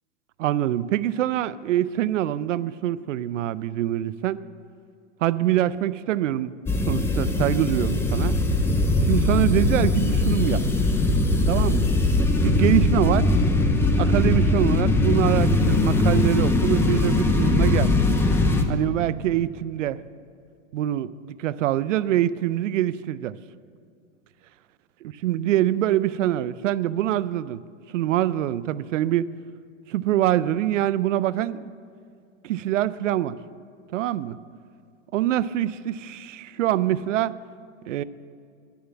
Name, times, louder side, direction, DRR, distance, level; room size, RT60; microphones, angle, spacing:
voice 1, 0.4-4.4 5.2-6.5 6.9-8.4 9.0-10.6 11.5-11.9 12.4-13.3 14.0-17.9 18.7-20.0 20.7-23.3 25.0-27.6 27.9-29.3 29.9-31.6 32.4-33.4 33.9-34.4 35.1-37.3 37.9-38.0, right 12 dB, 85° right, 17 dB, 0.5 m, -24 dB
sound 1, 6.7-18.6, left 2 dB, 5° left, 0.5 m, -21 dB
11.0 x 6.9 x 8.7 m, 2.2 s
hypercardioid pair, 130°, 37 cm